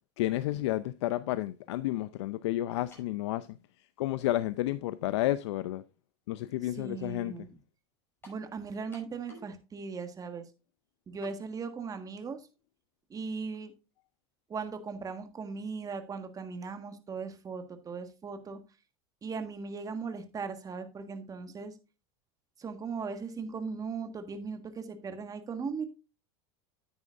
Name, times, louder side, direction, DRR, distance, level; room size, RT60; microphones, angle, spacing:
voice 1, 0.2-3.6 4.0-5.8 6.3-7.3, left 15 dB, 80° left, 0.5 m, -31 dB
sound 1, 2.9-3.2 4.1-4.2 8.2-8.5 8.9-9.6 9.8-9.9 11.2-11.4, equal, 15° left, 5.4 m, -53 dB
voice 2, 6.6-7.6 8.3-10.4 11.1-12.5 13.1-13.7 14.5-18.6 19.2-21.8 22.6-25.8, right 5 dB, 25° right, 1.6 m, -38 dB
9.9 x 9.0 x 2.5 m
supercardioid pair, 115°, 14 cm